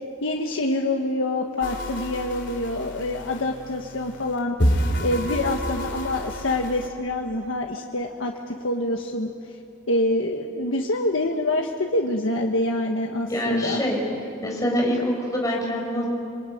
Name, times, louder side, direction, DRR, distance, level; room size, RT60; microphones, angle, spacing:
voice 1, 0.2-4.6 5.0-9.3 9.9-13.8, left 1 dB, 85° left, 2 dB, 1.4 m, -26 dB
sound 1, 1.6-6.9, equal, 65° left, 3.0 m, -29 dB
voice 2, 13.3-14.0 14.4-16.1, equal, 20° left, -1 dB, 5.5 m, -25 dB
26.5 x 22.0 x 9.3 m, 2.6 s
head